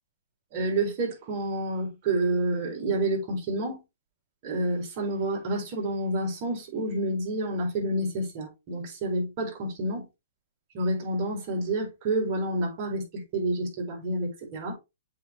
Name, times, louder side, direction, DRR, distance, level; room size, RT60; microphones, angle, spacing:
voice 1, 0.5-3.8 4.4-10.0 10.7-14.8, right 1 dB, 40° right, 4.1 m, -29 dB
8.0 x 4.5 x 3.3 m
hypercardioid pair, 135°, 0 cm